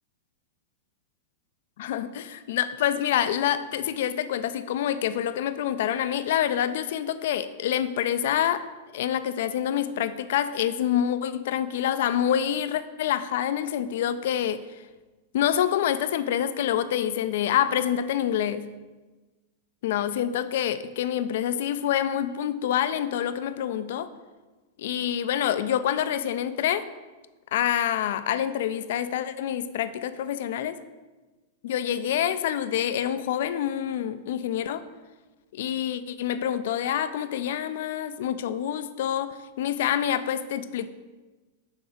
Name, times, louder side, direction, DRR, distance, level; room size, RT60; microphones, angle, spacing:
voice 1, 1.8-8.6 8.9-14.6 15.3-18.7 19.8-24.1 24.8-26.8 27.5-30.8 31.6-34.8 35.5-40.9, left 10 dB, 65° left, 12 dB, 0.3 m, -27 dB
6.3 x 3.7 x 4.9 m, 1.2 s
hypercardioid pair, 100°, 0 cm